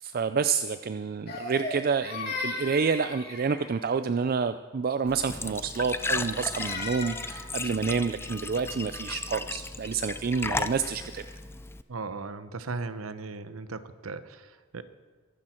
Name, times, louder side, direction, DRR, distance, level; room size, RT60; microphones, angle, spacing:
voice 1, 0.0-11.2, right 5 dB, 45° right, 11 dB, 0.4 m, -28 dB
Crying sobbing, 1.3-3.8 6.0-7.5, left 3 dB, 50° left, 2.7 m, -37 dB
Glass / Trickle dribble / Fill (with liquid), 5.1-11.8, left 3 dB, 10° left, 0.5 m, -35 dB
voice 2, 11.9-14.8, right 3 dB, 75° right, 12 dB, 0.9 m, -37 dB
22.5 x 12.5 x 4.4 m, 1.5 s
head